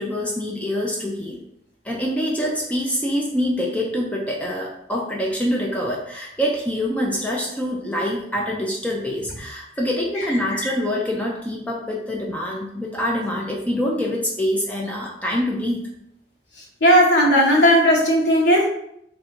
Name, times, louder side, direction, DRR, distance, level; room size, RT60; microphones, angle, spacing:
voice 1, 0.0-1.4 1.8-15.8, equal, 10° left, -2 dB, 0.5 m, -25 dB
voice 2, 16.8-18.7, equal, 90° left, -2 dB, 1.1 m, -16 dB
3.7 x 2.6 x 4.4 m, 0.74 s
head